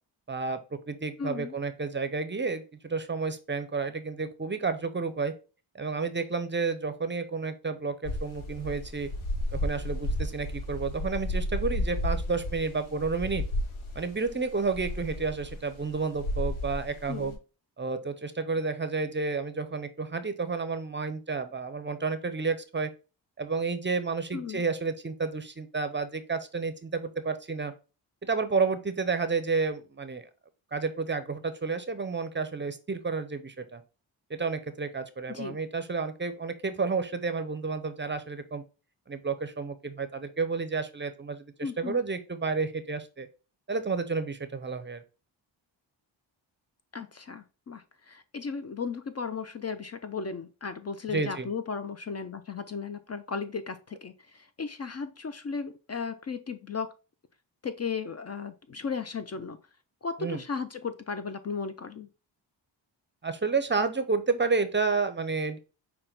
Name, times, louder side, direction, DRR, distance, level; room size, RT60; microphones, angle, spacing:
voice 1, 0.3-0.6 0.9-5.3 5.7-9.1 9.5-13.4 14.0-17.3 17.8-22.9 23.4-27.7 28.2-30.3 30.7-33.8 34.3-38.6 39.1-43.3 43.7-45.0 51.1-51.5 60.2-60.4 63.2-65.6, right 4 dB, 25° right, 10 dB, 0.6 m, -31 dB
voice 2, 1.2-1.5 17.1-17.4 24.3-24.6 35.3-35.6 41.6-42.0 46.9-56.9 57.6-59.6 60.0-62.1, left 5 dB, 35° left, 10 dB, 0.5 m, -35 dB
sound 1, 8.0-17.3, left 1 dB, 85° left, 1.0 m, -33 dB
5.7 x 2.2 x 3.8 m, 0.33 s
cardioid pair, 55°, 47 cm